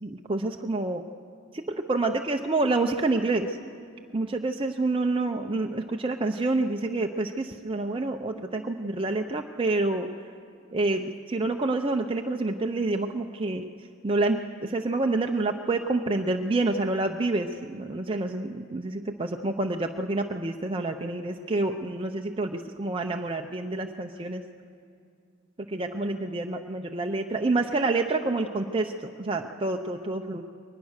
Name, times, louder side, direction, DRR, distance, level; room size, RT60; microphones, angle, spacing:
voice 1, 0.0-1.0 1.5-3.6 4.1-10.1 10.7-13.7 14.0-24.4 25.7-30.4, right 2 dB, 25° right, 3 dB, 0.6 m, -28 dB
22.0 x 20.0 x 6.5 m, 2.4 s
head